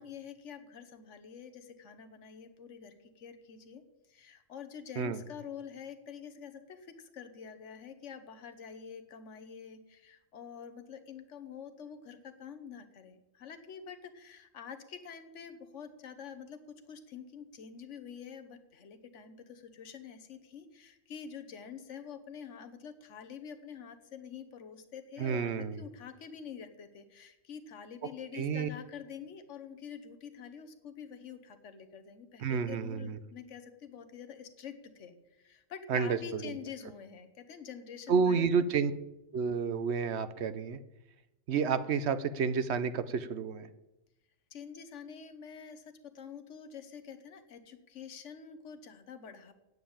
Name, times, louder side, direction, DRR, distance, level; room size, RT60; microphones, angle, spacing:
voice 1, 0.0-3.8 4.1-38.5 44.5-49.5, left 7 dB, 70° left, 7 dB, 1.4 m, -47 dB
voice 2, 25.2-25.8 28.3-28.7 32.4-33.1 35.9-36.5 38.1-38.9 39.3-40.8 41.5-43.7, right 6 dB, 65° right, 12 dB, 0.9 m, -30 dB
9.1 x 8.0 x 8.7 m, 0.94 s
omnidirectional pair, 1.3 m